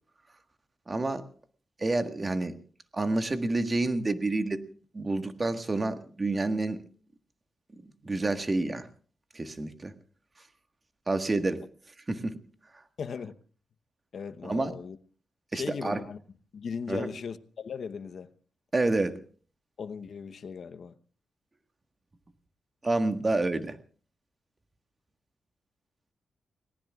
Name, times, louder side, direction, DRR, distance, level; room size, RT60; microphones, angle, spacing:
voice 1, 0.9-1.3 1.8-2.6 2.9-4.6 4.9-6.8 8.0-8.9 9.3-9.9 11.1-11.6 12.1-12.4 14.4-14.7 15.5-16.0 16.9-17.1 18.7-19.2 22.8-23.8, right 2 dB, 30° right, 1.6 m, -28 dB
voice 2, 13.0-13.3 14.1-15.0 15.5-16.2 16.5-18.3 19.8-21.0, left 6 dB, 65° left, 0.9 m, -38 dB
30.0 x 18.5 x 2.4 m
cardioid pair, 65°, 0 cm